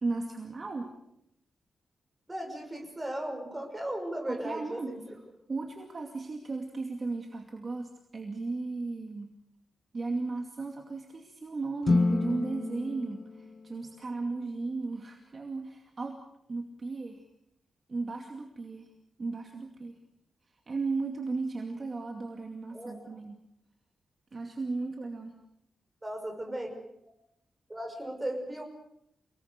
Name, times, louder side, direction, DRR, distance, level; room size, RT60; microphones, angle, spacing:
voice 1, 0.0-0.9 4.2-5.2 5.5-9.3 9.9-16.2 16.5-17.2 17.9-18.9 19.2-20.0 20.4-23.4 24.3-25.4, right 3 dB, 35° right, 2 dB, 2.5 m, -35 dB
voice 2, 2.3-5.1 22.7-23.2 26.0-26.7 27.7-28.6, right 1 dB, 15° right, 3 dB, 6.0 m, -36 dB
sound 1, 11.8-14.2, left 3 dB, 35° left, 1.3 m, -30 dB
29.5 x 19.5 x 6.8 m, 0.78 s
wide cardioid pair, 175°, 0 cm